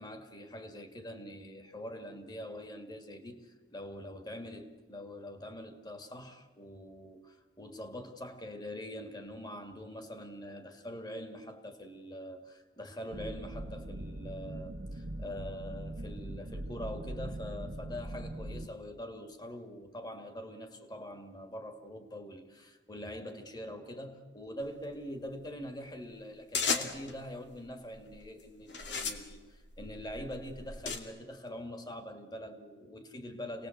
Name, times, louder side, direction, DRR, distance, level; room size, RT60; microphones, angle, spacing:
voice 1, 0.0-33.7, equal, 25° left, 2.2 m, -44 dB
sound 1, 13.1-18.7, right 1 dB, 70° right, 1.3 m, -41 dB
sound 2, 26.5-27.2 27.9-28.3 28.7-31.0, left 4 dB, 85° left, 2.4 m, -35 dB
27.0 x 19.0 x 8.0 m
head